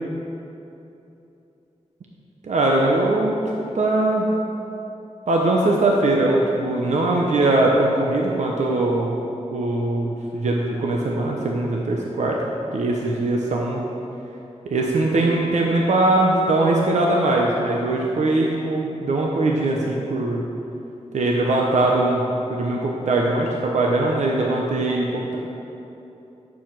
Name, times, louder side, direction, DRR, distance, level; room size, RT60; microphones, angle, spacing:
voice 1, 2.4-4.3 5.3-9.2 9.5-12.4 12.7-13.8 14.7-20.4 21.1-25.4, right 2 dB, 85° right, -1 dB, 1.0 m, -21 dB
11.0 x 5.1 x 7.6 m, 2.9 s
cardioid pair, 65°, 12 cm